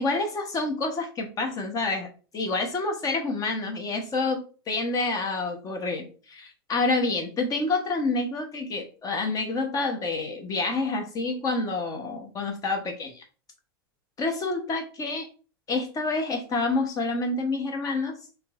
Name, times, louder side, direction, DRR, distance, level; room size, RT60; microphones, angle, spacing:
voice 1, 0.0-2.1 2.3-13.2 14.2-15.3 15.7-18.2, left 3 dB, 30° left, 4 dB, 0.9 m, -28 dB
3.6 x 2.8 x 2.4 m, 0.37 s
hypercardioid pair, 110°, 13 cm